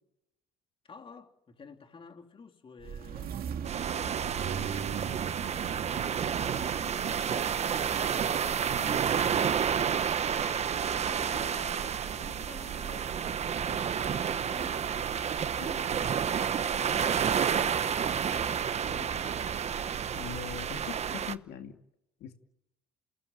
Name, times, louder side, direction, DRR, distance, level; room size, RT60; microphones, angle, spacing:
voice 1, 0.8-3.5 4.2-9.7 10.4-17.2 17.5-19.3, left 4 dB, 30° left, 3.1 m, -51 dB
sound 1, 2.8-21.3, right 8 dB, 60° right, 2.6 m, -40 dB
sound 2, 3.6-21.3, right 8 dB, 40° right, 1.0 m, -30 dB
voice 2, 20.1-21.8 22.2-22.3, left 9 dB, 75° left, 2.6 m, -42 dB
28.5 x 18.0 x 9.3 m
cardioid pair, 110°, 17 cm